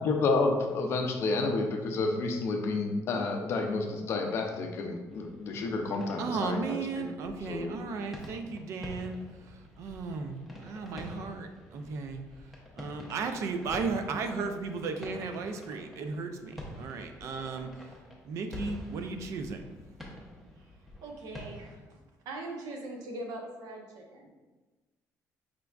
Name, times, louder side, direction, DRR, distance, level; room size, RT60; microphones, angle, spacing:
voice 1, 0.0-7.1 7.4-7.8, left 3 dB, 45° left, 3 dB, 0.4 m, -30 dB
sound 1, 5.1-21.8, equal, 5° right, 0.6 m, -47 dB
voice 2, 6.2-9.2 9.5-12.2 12.8-17.7 18.2-19.6, right 4 dB, 55° right, 7 dB, 0.4 m, -35 dB
voice 3, 21.0-22.0 22.2-24.3, right 2 dB, 90° right, 1 dB, 0.8 m, -41 dB
5.1 x 3.3 x 2.3 m, 1.2 s
cardioid pair, 180°, 6 cm